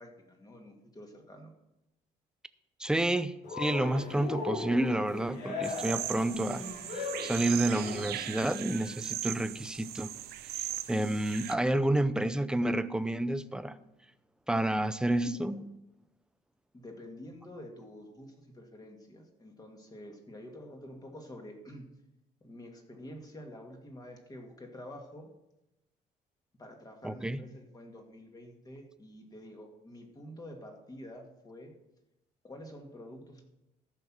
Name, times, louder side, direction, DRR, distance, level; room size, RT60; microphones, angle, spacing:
voice 1, 0.0-1.5 16.7-21.9 22.4-25.3 26.6-31.7 32.4-33.4, left 1 dB, 20° left, 2 dB, 2.2 m, -48 dB
voice 2, 2.8-6.6 6.9-10.1 10.6-13.8 14.5-15.7 27.0-27.4, right 1 dB, 5° right, 13 dB, 0.5 m, -30 dB
Cheering, 3.4-8.4, left 4 dB, 80° left, 2.9 m, -38 dB
sound 1, 5.6-11.6, right 13 dB, 70° right, 0.7 m, -39 dB
14.0 x 5.9 x 6.2 m, 0.92 s
cardioid pair, 110°, 17 cm